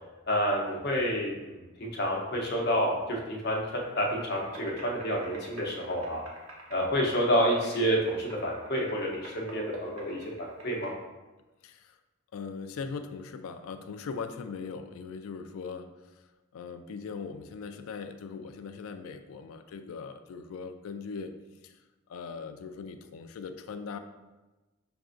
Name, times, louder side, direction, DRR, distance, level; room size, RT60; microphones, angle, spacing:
voice 1, 0.3-6.2 6.7-10.9, equal, 50° left, -1 dB, 0.7 m, -29 dB
sound 1, 3.7-10.9, right 1 dB, 80° right, 0.8 m, -48 dB
voice 2, 11.6-12.0 12.3-15.9 16.5-21.3 21.6-21.8 22.1-24.0, left 5 dB, 85° left, 9 dB, 0.3 m, -40 dB
5.9 x 2.5 x 2.4 m, 1.1 s
head